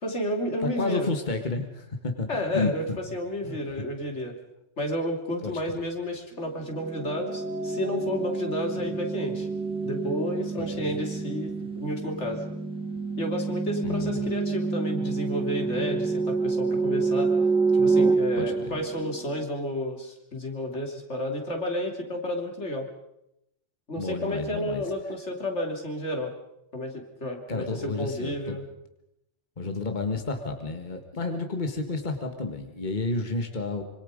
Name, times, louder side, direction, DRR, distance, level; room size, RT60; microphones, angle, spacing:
voice 1, 0.0-1.1 2.3-4.4 4.8-9.5 9.8-12.4 13.2-17.3 17.7-22.9 23.9-26.3 26.7-28.6, left 1 dB, 75° left, 2 dB, 3.5 m, -31 dB
voice 2, 0.6-3.0 3.4-3.8 5.4-5.9 13.8-14.3 18.4-18.8 24.0-24.8 27.5-28.6 29.6-33.8, left 3 dB, 40° left, 5 dB, 1.9 m, -31 dB
Pre-syncope, 6.7-19.4, right 4 dB, 5° right, 2.4 m, -28 dB
26.0 x 25.5 x 5.2 m, 0.83 s
omnidirectional pair, 1.2 m